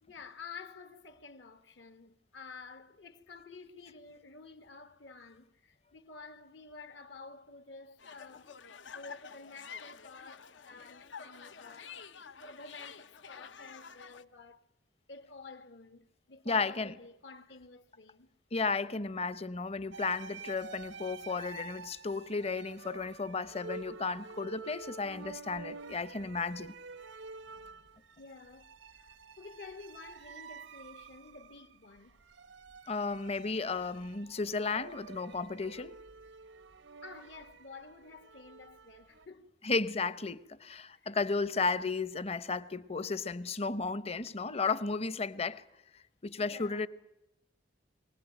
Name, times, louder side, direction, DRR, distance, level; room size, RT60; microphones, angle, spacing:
voice 1, 0.0-12.1 12.4-14.6 15.1-18.3 28.2-32.1 37.0-39.5 40.9-41.1 46.4-46.9, left 4 dB, 70° left, 1.4 m, -51 dB
sound 1, 8.0-14.2, left 6 dB, 90° left, 1.1 m, -49 dB
voice 2, 16.5-16.9 18.5-26.7 32.9-35.9 39.6-45.6 45.9-46.9, left 4 dB, 35° left, 0.8 m, -34 dB
sound 2, 19.9-39.3, right 4 dB, 90° right, 1.0 m, -49 dB
24.0 x 18.5 x 9.1 m
head